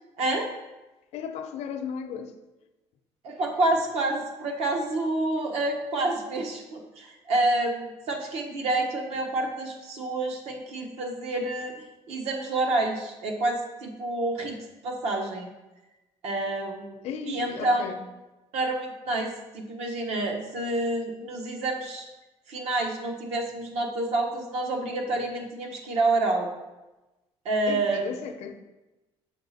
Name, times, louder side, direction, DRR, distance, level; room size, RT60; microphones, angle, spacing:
voice 1, 1.1-2.3 17.0-18.0 27.7-28.6, left 7 dB, 75° left, 0.6 m, -35 dB
voice 2, 3.2-11.7 12.1-14.6 14.8-15.5 16.2-17.9 18.5-22.0 22.5-26.5 27.4-28.1, right 2 dB, 70° right, 1.1 m, -28 dB
6.5 x 4.1 x 4.1 m
cardioid pair, 145°, 11 cm